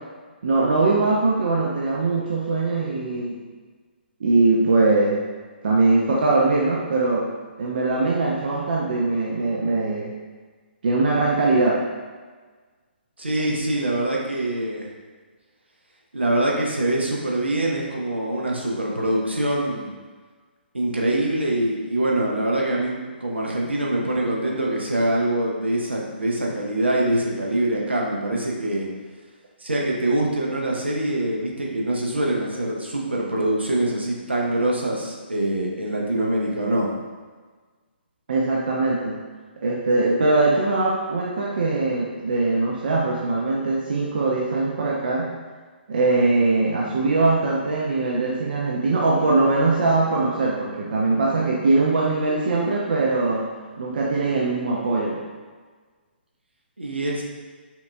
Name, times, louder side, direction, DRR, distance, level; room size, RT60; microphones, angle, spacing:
voice 1, 0.4-3.4 4.2-5.2 5.6-7.3 7.6-10.1 10.8-11.8 38.3-39.2 39.6-45.3 45.9-53.5 53.8-55.2, right 3 dB, 55° right, -3 dB, 0.5 m, -21 dB
voice 2, 13.2-14.9 16.1-19.9 20.7-28.9 29.6-36.9 56.8-57.2, right 1 dB, 80° right, -2 dB, 0.8 m, -24 dB
5.6 x 2.5 x 2.3 m, 1.4 s
figure-of-eight pair, 130°, 6 cm